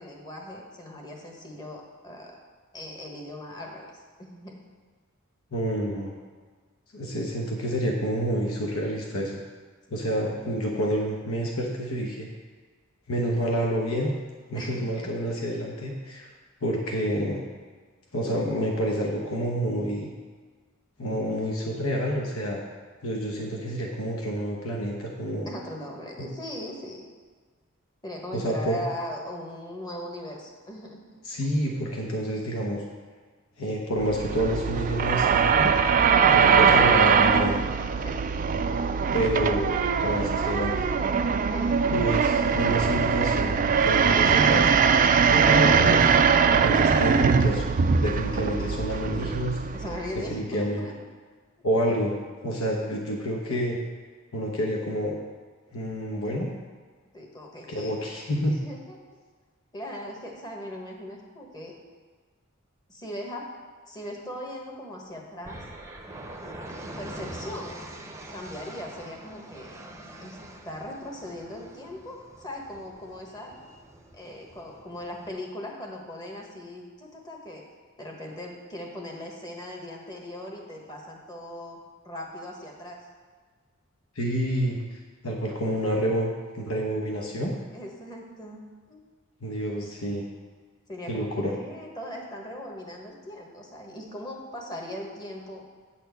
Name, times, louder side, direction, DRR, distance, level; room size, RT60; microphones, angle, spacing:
voice 1, 0.0-2.4 2.7-3.9 4.2-4.6 14.5-15.1 25.4-27.0 28.0-31.5 38.0-38.2 41.5-41.8 49.7-51.0 57.1-58.0 58.6-59.0 59.7-61.7 62.9-63.5 63.9-65.6 66.4-66.6 66.8-67.8 68.3-69.7 70.2-70.4 70.6-73.5 74.1-77.6 78.0-81.8 82.0-83.0 87.7-89.0 90.9-95.6, left 1 dB, 20° left, 0 dB, 1.3 m, -39 dB
voice 2, 5.5-6.1 6.9-9.4 9.9-12.3 13.1-14.1 14.5-16.3 16.6-17.4 18.1-20.1 21.0-22.6 23.0-25.5 26.2-26.3 28.3-28.8 31.2-32.8 33.6-35.8 36.3-37.6 39.1-40.9 41.9-44.7 45.3-46.1 46.5-49.6 50.3-50.8 51.6-52.1 52.4-53.8 54.3-55.2 55.7-56.5 57.7-58.6 84.2-87.5 89.4-90.2 91.1-91.5, equal, 75° left, 0 dB, 1.0 m, -28 dB
sound 1, 34.0-50.3, right 6 dB, 40° right, 0.3 m, -22 dB
sound 2, 65.4-75.3, right 1 dB, 15° right, 0.7 m, -44 dB
9.0 x 4.3 x 6.9 m, 1.5 s
head